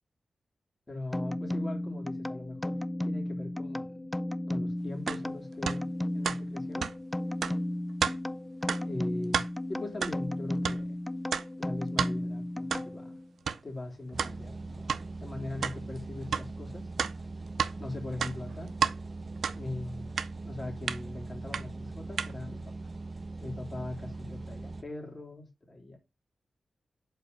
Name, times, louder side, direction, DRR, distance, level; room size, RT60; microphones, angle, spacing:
voice 1, 0.9-4.1 4.5-6.9 8.8-11.0 11.6-13.2 13.6-14.9 15.2-16.9 17.8-18.7 19.5-20.1 20.4-22.6 23.4-26.0, left 2 dB, 40° left, 3.2 m, -41 dB
sound 1, 1.1-13.3, left 1 dB, 15° left, 0.4 m, -34 dB
sound 2, 5.1-5.2 5.7-5.8 6.2-6.4 6.8-6.9 7.4-7.6 8.0-8.2 8.7-8.8 9.2-9.5 10.0-10.2 10.6-10.8 11.3-11.5 12.0-12.1 12.7-12.8 13.5-13.6 14.2-14.3 14.9-15.0 15.6-15.8 16.3-16.4 17.0-17.7 18.1-19.0 19.4-19.6 20.2-20.3 20.9-21.0 21.5-21.6 22.2-22.3, right 7 dB, 85° right, 0.5 m, -30 dB
sound 3, 14.1-24.8, right 3 dB, 45° right, 0.7 m, -41 dB
5.4 x 4.6 x 5.4 m
cardioid pair, 50°, 0 cm